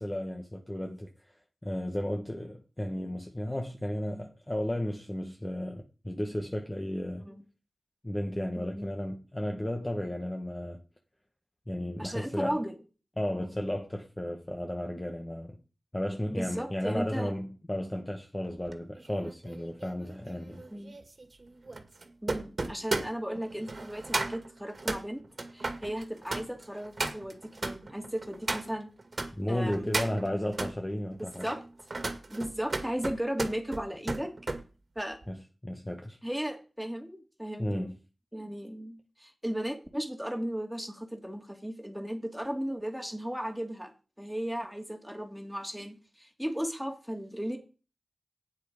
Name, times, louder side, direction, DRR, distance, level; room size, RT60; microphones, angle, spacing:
voice 1, 0.0-1.4 1.6-7.3 8.0-10.8 11.7-12.6 13.2-15.6 15.9-20.6 29.3-31.4 35.3-36.2 37.6-38.0, left 1 dB, 20° left, 1.5 m, -34 dB
voice 2, 8.6-8.9 12.0-12.7 16.3-17.3 20.7-21.0 22.2-25.2 25.5-28.9 29.5-29.8 31.2-31.6 32.3-34.3 35.0-35.2 36.2-37.8 38.3-47.6, equal, ahead, 2.6 m, -36 dB
sound 1, 18.7-29.3 29.7-30.7 31.3-34.6 35.0-35.3, right 3 dB, 55° right, 2.1 m, -36 dB
12.0 x 8.8 x 5.2 m
wide cardioid pair, 60°, 0 cm